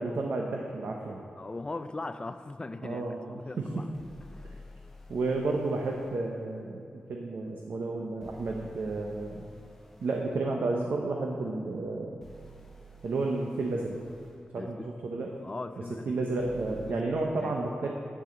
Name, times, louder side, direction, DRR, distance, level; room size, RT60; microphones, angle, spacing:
voice 1, 0.0-1.2 2.8-3.8 4.4-4.6 5.1-9.5 10.0-12.2 13.0-13.9 14.5-15.4 16.1-17.9, right 3 dB, 80° right, 0 dB, 0.8 m, -32 dB
voice 2, 1.4-3.9 4.3-4.5 14.6-14.9 15.4-16.1 16.7-17.5, left 2 dB, 30° left, 10 dB, 0.4 m, -40 dB
sound 1, 3.9-6.2 8.2-10.3 12.2-14.4 16.4-16.9, equal, 10° left, 0.9 m, -51 dB
10.5 x 9.0 x 3.9 m, 2.4 s
wide cardioid pair, 100°, 3 cm